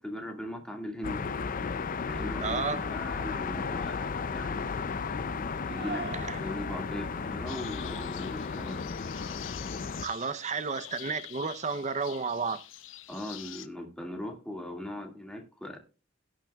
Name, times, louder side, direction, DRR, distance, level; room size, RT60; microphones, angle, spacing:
voice 1, 0.0-1.3 2.1-2.7 2.9-5.1 5.7-8.8 13.1-15.8, left 1 dB, 5° left, 2.0 m, -39 dB
sound 1, 1.0-10.1, left 5 dB, 45° left, 0.5 m, -34 dB
sound 2, 2.2-8.7, right 2 dB, 55° right, 2.2 m, -47 dB
voice 2, 2.4-2.9 6.3-6.4 10.0-12.6, right 5 dB, 35° right, 0.7 m, -32 dB
sound 3, 7.5-13.7, left 12 dB, 75° left, 0.9 m, -46 dB
17.5 x 8.9 x 2.3 m
head